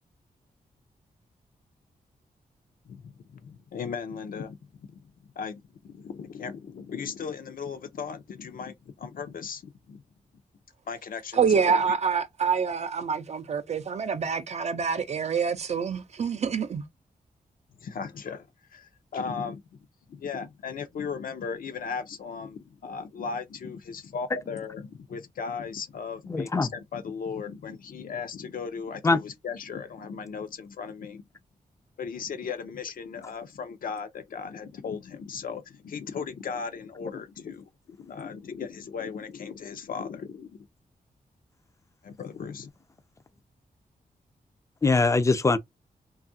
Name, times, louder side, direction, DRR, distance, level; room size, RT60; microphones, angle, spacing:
voice 1, 2.8-10.0 10.9-11.9 17.8-19.6 20.1-31.2 32.0-40.7 42.0-42.7, left 6 dB, 70° left, 0.5 m, -37 dB
voice 2, 11.3-16.8, right 6 dB, 50° right, 0.4 m, -26 dB
voice 3, 26.3-26.7 29.0-29.2 44.8-45.6, left 3 dB, 20° left, 0.4 m, -22 dB
2.7 x 2.4 x 2.5 m
wide cardioid pair, 95°, 15 cm